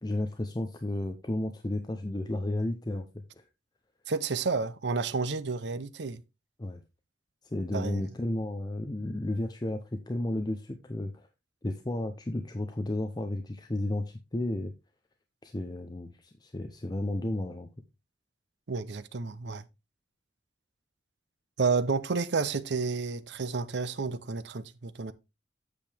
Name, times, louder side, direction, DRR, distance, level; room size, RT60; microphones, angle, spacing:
voice 1, 0.0-3.4 6.6-6.8 7.4-11.3 11.6-14.7 15.4-17.7, left 1 dB, 25° left, 0.6 m, -33 dB
voice 2, 4.1-6.2 7.7-8.0 18.7-19.6 21.6-25.1, right 4 dB, 70° right, 0.7 m, -30 dB
8.4 x 6.7 x 3.3 m
head